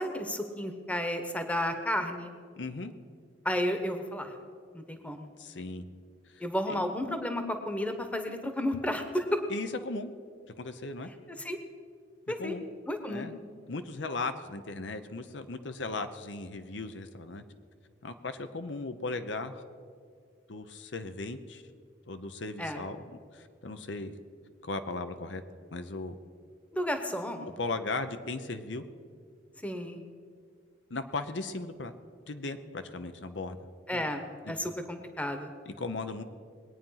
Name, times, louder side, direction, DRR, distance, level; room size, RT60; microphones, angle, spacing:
voice 1, 0.0-2.3 3.4-4.3 4.7-5.3 6.4-9.4 11.4-11.6 12.3-12.6 12.9-13.3 22.6-22.8 26.7-27.6 29.6-30.0 33.9-35.5, left 1 dB, 10° left, 7 dB, 1.0 m, -32 dB
voice 2, 2.6-2.9 5.4-5.9 6.3-6.4 6.7-6.8 9.5-10.1 10.6-11.1 12.4-12.6 13.1-13.3 13.7-17.4 18.0-19.6 20.5-21.6 22.1-23.0 23.3-24.1 24.6-25.4 25.7-26.1 27.6-28.8 30.9-31.9 32.3-33.6 33.9-34.0 34.4-34.5 35.7-36.2, left 3 dB, 80° left, 9 dB, 0.8 m, -37 dB
21.5 x 9.1 x 5.7 m, 2.1 s
head